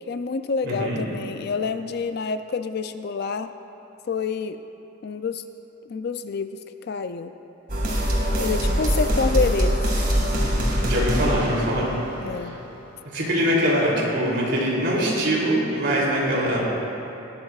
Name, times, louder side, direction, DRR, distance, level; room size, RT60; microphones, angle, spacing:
voice 1, 0.1-3.5 4.1-4.6 5.0-5.4 5.9-7.3 8.4-10.1 12.2-12.6, left 5 dB, 50° left, 9 dB, 0.4 m, -28 dB
voice 2, 0.6-1.0 10.8-11.9 13.1-16.6, equal, 65° right, -5 dB, 3.0 m, -23 dB
sound 1, 7.7-12.7, equal, 45° right, 2.1 m, -23 dB
19.5 x 13.0 x 2.4 m, 2.9 s
head